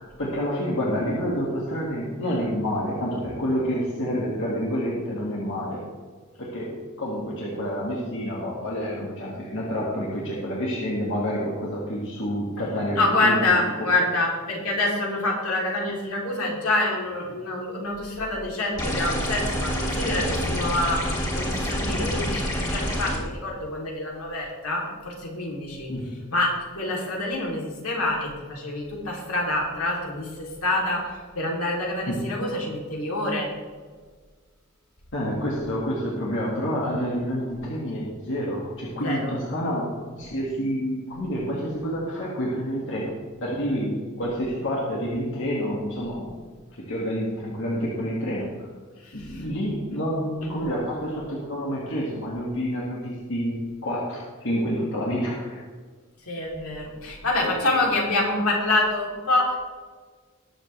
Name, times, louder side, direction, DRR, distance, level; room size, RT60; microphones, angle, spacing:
voice 1, 0.0-5.8 6.4-6.7 7.0-13.4 13.8-13.9 25.9-26.2 32.1-32.2 35.1-43.1 43.4-46.3 46.8-48.7 49.1-55.6 57.4-57.5, equal, 60° left, -5 dB, 2.3 m, -28 dB
voice 2, 13.0-21.0 21.3-25.9 26.3-26.5 26.7-33.5 39.0-39.3 49.0-49.4 50.4-50.6 56.3-59.5, left 2 dB, 80° left, -2 dB, 3.5 m, -26 dB
sound 1, 18.8-23.2, equal, 20° left, 2.9 m, -27 dB
20.0 x 7.4 x 3.5 m, 1.5 s
head